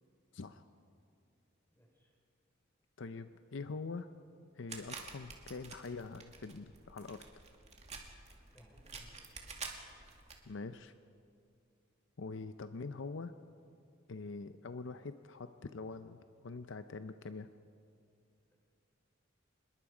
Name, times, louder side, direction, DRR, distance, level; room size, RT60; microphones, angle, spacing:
voice 1, 1.7-2.1 8.5-9.2, equal, 10° left, -1 dB, 4.7 m, -62 dB
voice 2, 3.0-4.1 4.6-7.3 10.5-10.9 12.2-13.3 14.1-17.5, left 4 dB, 65° left, 10 dB, 0.6 m, -44 dB
sound 1, 4.7-10.4, right 4 dB, 35° right, 2.2 m, -49 dB
25.5 x 21.0 x 5.0 m, 2.4 s
head